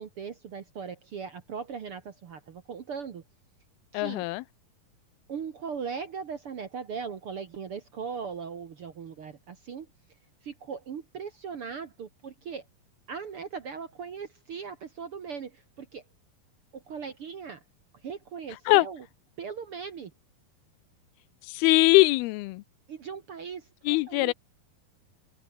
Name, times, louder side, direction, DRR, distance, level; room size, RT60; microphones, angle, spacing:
voice 1, 0.0-3.2 3.9-4.2 5.3-9.9 10.4-12.6 13.1-16.0 16.7-17.6 18.0-19.1 19.4-20.1 22.9-24.3, right 6 dB, 55° right, 1.6 m, -39 dB
voice 2, 3.9-4.4 18.7-18.9 21.4-22.6 23.9-24.3, left 22 dB, 90° left, 2.6 m, -22 dB
omnidirectional pair, 4.3 m